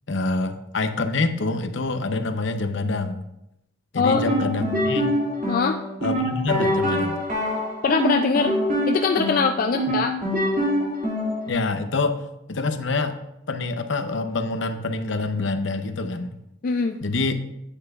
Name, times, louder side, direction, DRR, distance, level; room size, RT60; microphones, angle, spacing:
voice 1, 0.1-3.2 3.9-5.1 6.0-7.2 9.9-10.0 11.5-12.2 12.5-13.2 13.5-16.3 17.0-17.4, left 3 dB, 65° left, 8 dB, 0.7 m, -26 dB
sound 1, 4.1-11.5, equal, 40° right, 2.4 m, -25 dB
voice 2, 5.5-5.8 7.8-8.6 8.9-10.1 16.6-17.0, left 4 dB, 45° left, 5 dB, 0.4 m, -22 dB
10.0 x 9.0 x 2.4 m, 0.86 s
head